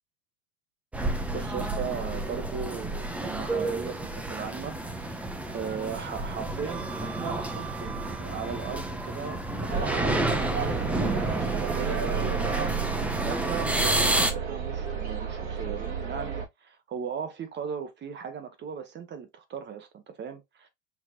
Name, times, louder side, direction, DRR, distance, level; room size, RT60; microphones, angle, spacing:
sound 1, 0.9-14.3, right 1 dB, 5° right, 0.4 m, -30 dB
voice 1, 1.3-20.7, right 7 dB, 25° right, 1.1 m, -38 dB
sound 2, 9.7-16.4, right 7 dB, 45° right, 2.1 m, -32 dB
5.8 x 2.9 x 2.8 m
supercardioid pair, 135°, 40 cm